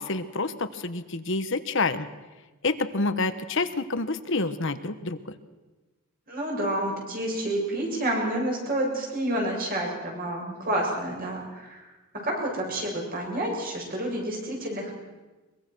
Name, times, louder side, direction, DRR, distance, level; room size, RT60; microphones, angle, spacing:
voice 1, 0.0-2.1 2.6-5.2, left 3 dB, 60° left, 11 dB, 1.2 m, -28 dB
voice 2, 6.3-11.9 12.2-14.9, right 1 dB, 40° right, -1 dB, 7.2 m, -29 dB
23.0 x 22.5 x 6.3 m, 1.2 s
head